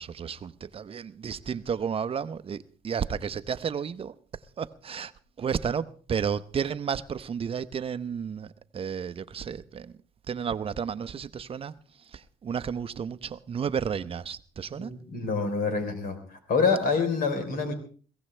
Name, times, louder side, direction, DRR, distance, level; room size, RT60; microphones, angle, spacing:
voice 1, 0.0-4.2 4.6-5.1 5.4-9.9 10.3-14.9, right 7 dB, 35° right, 0.8 m, -32 dB
voice 2, 14.8-17.7, left 4 dB, 60° left, 3.9 m, -27 dB
22.0 x 16.5 x 3.3 m
cardioid pair, 110°, 17 cm